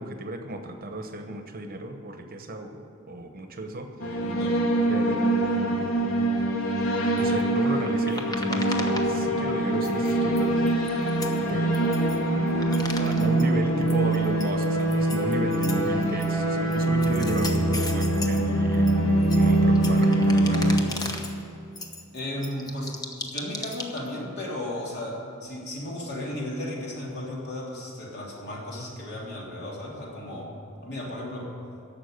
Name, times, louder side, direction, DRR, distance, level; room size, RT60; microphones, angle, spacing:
voice 1, 0.0-3.9 4.9-5.9 7.1-10.6 11.5-21.2, right 1 dB, 45° right, 6 dB, 1.0 m, -34 dB
sound 1, 4.0-20.8, right 1 dB, 75° left, 1.6 m, -23 dB
sound 2, 6.9-9.6 9.8-12.2 12.5-13.4 13.8-16.3 16.7-18.4 18.7-21.3 21.8-24.2, left 2 dB, 20° left, 1.0 m, -37 dB
voice 2, 22.1-30.5 30.8-31.5, left 1 dB, 50° left, -3 dB, 3.2 m, -35 dB
11.5 x 7.4 x 9.5 m, 2.7 s
head